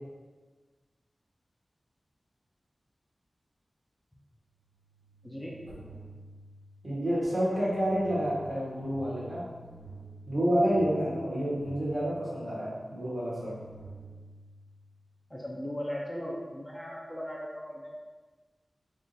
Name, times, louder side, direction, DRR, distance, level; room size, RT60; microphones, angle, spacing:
sound 1, 4.5-15.2, right 2 dB, 10° right, 0.9 m, -50 dB
voice 1, 5.2-5.7 15.3-18.0, equal, 10° left, -3 dB, 0.4 m, -38 dB
voice 2, 6.8-9.4 10.3-13.5, equal, 50° right, -8 dB, 1.2 m, -29 dB
3.6 x 2.4 x 2.6 m, 1.3 s
wide cardioid pair, 75°, 0 cm